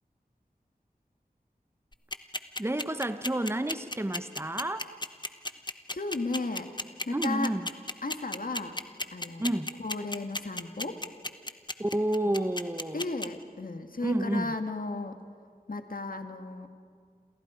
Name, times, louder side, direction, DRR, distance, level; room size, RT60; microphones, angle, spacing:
sound 1, 1.9-13.3, left 2 dB, 30° left, 1.1 m, -33 dB
voice 1, 2.6-4.9 7.1-7.6 9.4-9.7 11.8-13.0 14.0-14.5, right 1 dB, 15° right, 11 dB, 0.9 m, -30 dB
voice 2, 5.9-6.7 7.1-7.5 8.0-8.7 9.1-11.0 12.3-12.4 12.9-15.2 15.7-16.7, left 2 dB, 65° left, 6 dB, 2.0 m, -34 dB
29.0 x 27.5 x 5.1 m, 2.1 s
wide cardioid pair, 45°, 16 cm